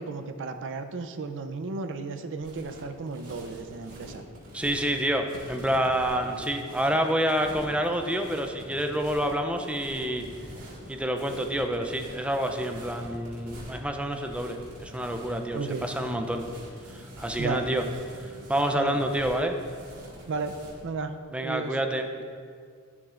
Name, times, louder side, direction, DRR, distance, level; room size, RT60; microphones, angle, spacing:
voice 1, 0.0-4.2 15.5-15.9 17.4-17.7 18.7-19.0 20.3-20.6 20.8-21.8, right 4 dB, 60° right, 7 dB, 0.5 m, -34 dB
sound 1, 2.4-20.8, equal, 85° right, 1.8 m, -45 dB
voice 2, 4.5-10.3 10.9-16.4 16.9-17.8 18.2-19.6 21.3-22.2, right 1 dB, 5° right, 5 dB, 0.4 m, -28 dB
11.0 x 7.1 x 2.5 m, 2.1 s
head